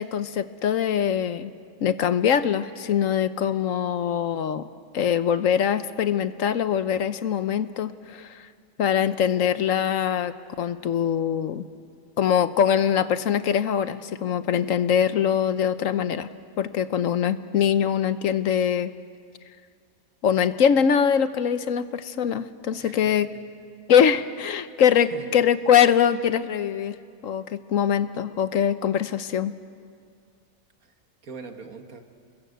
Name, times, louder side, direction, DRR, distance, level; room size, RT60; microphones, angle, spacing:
voice 1, 0.0-1.5 1.8-4.6 4.9-8.4 8.8-11.6 12.2-16.3 16.6-18.9 20.2-23.3 23.9-27.0 27.2-29.5, left 8 dB, 70° left, 13 dB, 1.2 m, -23 dB
voice 2, 22.7-23.2 24.9-25.2 30.8-30.9 31.2-32.0, right 5 dB, 80° right, 5 dB, 2.2 m, -42 dB
28.5 x 21.0 x 8.0 m, 2.2 s
omnidirectional pair, 1.5 m